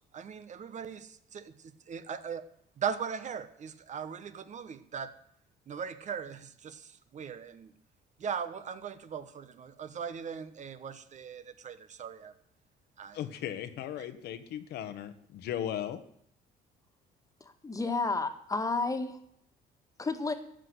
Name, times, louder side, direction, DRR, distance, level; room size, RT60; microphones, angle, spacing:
voice 1, 0.1-1.5 1.9-2.4 2.8-5.1 5.7-7.7 8.2-12.3 13.0-13.2, right 7 dB, 45° right, 12 dB, 1.2 m, -39 dB
voice 2, 13.1-16.0, left 10 dB, 75° left, 10 dB, 1.4 m, -37 dB
voice 3, 17.4-19.2 20.0-20.3, left 3 dB, 20° left, 8 dB, 1.8 m, -31 dB
14.5 x 6.3 x 9.7 m, 0.70 s
cardioid pair, 110°, 17 cm